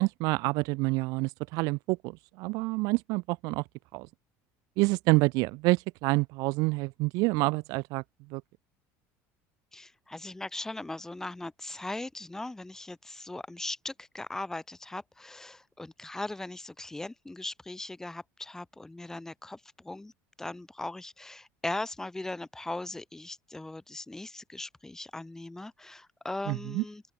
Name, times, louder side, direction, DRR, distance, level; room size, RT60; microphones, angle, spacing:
voice 1, 0.0-3.6 3.9-4.1 4.8-8.0 8.3-8.4 26.5-26.8, right 25 dB, 65° right, 0.7 m, -27 dB
voice 2, 9.7-20.1 20.4-27.0, left 2 dB, 5° left, 3.6 m, -39 dB
open air
cardioid pair, 155°, 7 cm